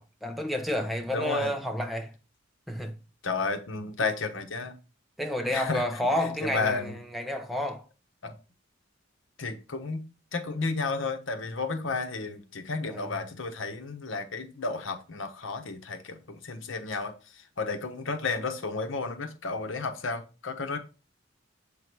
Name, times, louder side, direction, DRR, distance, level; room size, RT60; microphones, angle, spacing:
voice 1, 0.0-2.1 2.7-3.0 5.2-7.8 12.9-13.1, left 1 dB, ahead, 0.9 m, -30 dB
voice 2, 1.1-1.5 3.2-4.7 5.5-5.8 6.4-6.9 8.2-8.3 9.4-20.8, left 4 dB, 70° left, 1.0 m, -32 dB
7.5 x 3.8 x 4.6 m
head